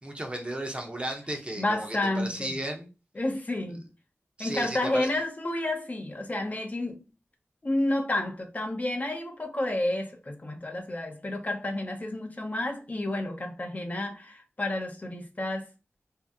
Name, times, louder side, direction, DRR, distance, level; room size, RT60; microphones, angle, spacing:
voice 1, 0.0-2.9 4.4-5.1, right 1 dB, 25° right, 0.8 m, -34 dB
voice 2, 1.6-2.5 3.1-3.8 4.4-7.0 7.6-15.7, left 1 dB, 35° left, 0.6 m, -30 dB
2.7 x 2.0 x 3.5 m
wide cardioid pair, 75°, 5 cm